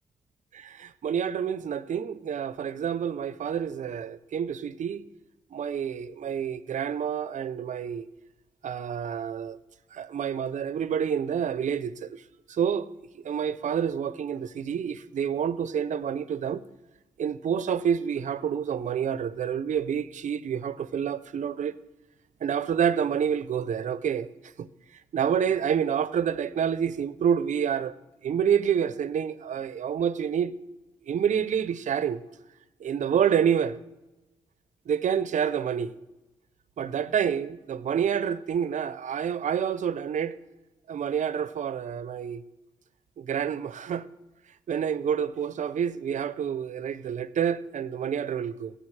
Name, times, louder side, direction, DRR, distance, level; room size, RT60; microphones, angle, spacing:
voice 1, 0.6-5.0 5.5-8.1 8.6-9.6 9.9-12.2 12.5-12.9 13.1-16.6 17.2-21.7 22.4-24.3 24.6-24.7 25.1-27.9 28.2-30.5 31.0-32.2 32.8-33.8 34.9-35.9 36.8-40.4 40.9-42.4 43.2-44.1 44.7-48.7, right 8 dB, 65° right, 0.6 m, -28 dB
18.5 x 7.8 x 3.2 m
supercardioid pair, 50°, 14 cm